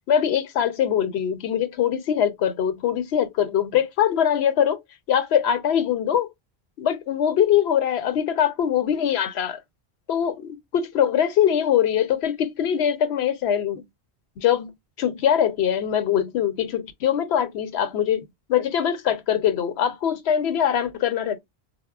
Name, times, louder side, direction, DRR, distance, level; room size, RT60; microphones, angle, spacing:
voice 1, 0.1-4.8 5.1-6.3 6.8-9.6 10.1-13.8 14.4-14.7 15.0-21.4, left 9 dB, 85° left, 0.9 m, -22 dB
4.1 x 2.1 x 2.3 m
omnidirectional pair, 1.0 m